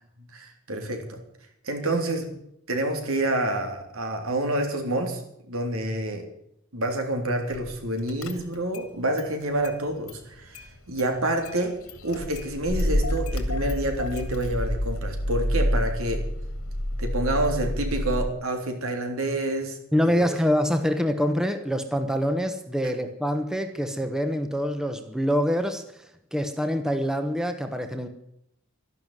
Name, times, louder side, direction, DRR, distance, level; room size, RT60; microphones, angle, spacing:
voice 1, 0.3-1.2 1.6-2.3 2.7-5.2 5.5-6.2 6.7-11.8 12.0-16.2 17.0-19.8 20.1-20.2, right 1 dB, 80° right, 4 dB, 3.5 m, -28 dB
Car / Engine starting, 7.5-7.8 8.1-8.9 9.2-10.2 10.5-18.3, equal, 80° left, 2.3 m, -29 dB
voice 2, 19.9-26.0 26.3-28.1, equal, 5° right, 7 dB, 1.1 m, -25 dB
13.0 x 11.5 x 9.2 m, 0.77 s
head